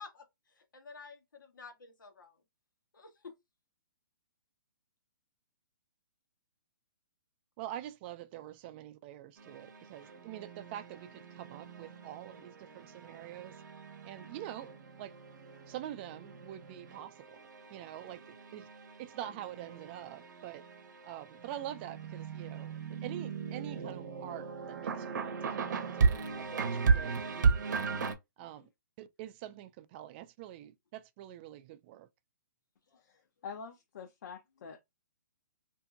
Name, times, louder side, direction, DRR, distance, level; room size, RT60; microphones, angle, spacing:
voice 1, 0.0-2.4 2.9-3.3 28.4-28.7, left 5 dB, 90° left, 1.0 m, -51 dB
voice 2, 7.6-13.6 14.0-14.7 15.0-15.2 15.7-17.4 17.7-18.7 19.0-20.7 21.0-28.0 28.4-28.7 29.0-32.1, right 12 dB, 30° right, 0.4 m, -45 dB
sound 1, 9.4-28.1, right 5 dB, 65° right, 0.7 m, -36 dB
voice 3, 32.9-34.8, left 6 dB, 65° left, 0.6 m, -46 dB
2.8 x 2.6 x 2.4 m
hypercardioid pair, 140°, 10 cm